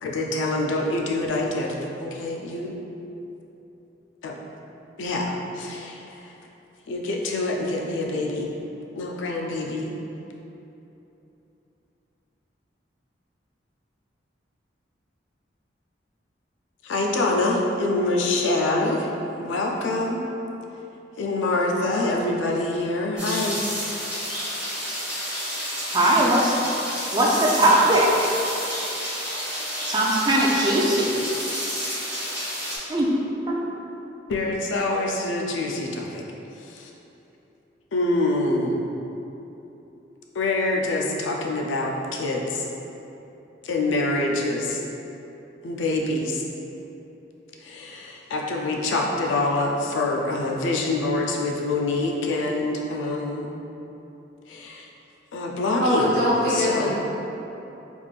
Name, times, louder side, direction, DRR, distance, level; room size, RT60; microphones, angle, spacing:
voice 1, 0.0-2.8 4.2-4.4 5.0-6.0 6.9-8.5 8.9-9.9 16.8-19.1 19.4-20.2 21.2-23.6 34.3-36.2 36.7-36.9 37.9-38.8 40.3-42.6 43.6-44.8 45.6-46.4 47.6-53.5 54.5-54.8 55.3-56.1 56.5-56.9, left 2 dB, 85° left, 0 dB, 0.4 m, -25 dB
sound 1, 23.2-32.8, equal, 5° right, 1.3 m, -30 dB
voice 2, 25.9-26.5 27.1-28.3 29.9-31.2 32.9-33.1 33.4-33.6, right 1 dB, 25° right, -3 dB, 0.4 m, -20 dB
voice 3, 55.8-56.9, left 1 dB, 60° right, -9 dB, 1.2 m, -22 dB
3.5 x 3.3 x 2.4 m, 3.0 s
head